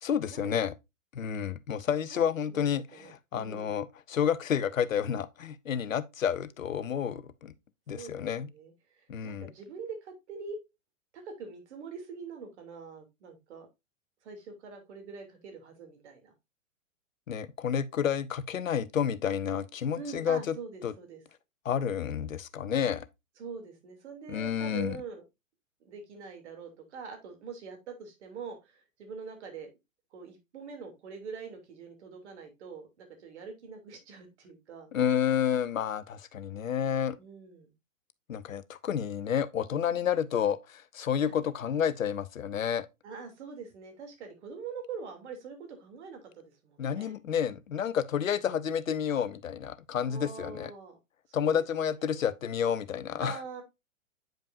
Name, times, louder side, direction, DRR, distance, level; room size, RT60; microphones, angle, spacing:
voice 1, 0.0-0.7 1.1-7.5 7.9-8.5 9.1-9.5 17.3-20.6 20.8-20.9 21.6-23.1 24.3-25.0 34.9-37.2 38.3-42.9 46.8-50.7 51.3-53.4, left 8 dB, 75° left, 0.9 m, -30 dB
voice 2, 2.1-3.7 8.0-10.6 11.1-13.7 14.2-16.3 19.9-21.2 23.4-25.2 25.8-29.7 30.1-34.9 37.2-37.7 41.2-41.4 43.0-47.2 50.1-51.0 51.3-51.6 52.0-52.2 53.2-53.6, right 5 dB, 55° right, 3.0 m, -44 dB
8.9 x 5.3 x 2.6 m
figure-of-eight pair, 110°, 40 cm